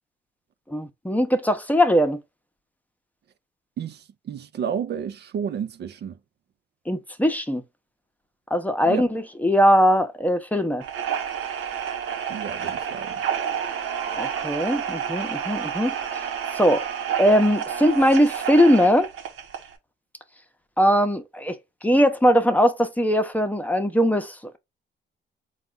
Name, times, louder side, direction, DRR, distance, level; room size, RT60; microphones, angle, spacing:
voice 1, 0.7-2.2 6.9-7.6 8.5-10.8 14.1-15.9 16.6-16.8 17.2-19.1 20.8-21.6 21.8-24.6, equal, 10° left, 0.8 m, -20 dB
voice 2, 3.8-6.2 8.8-9.1 12.3-13.2, right 8 dB, 60° right, 0.6 m, -31 dB
sound 1, 10.8-19.7, right 8 dB, 85° right, 0.9 m, -30 dB
4.2 x 2.4 x 3.8 m
cardioid pair, 90°, 20 cm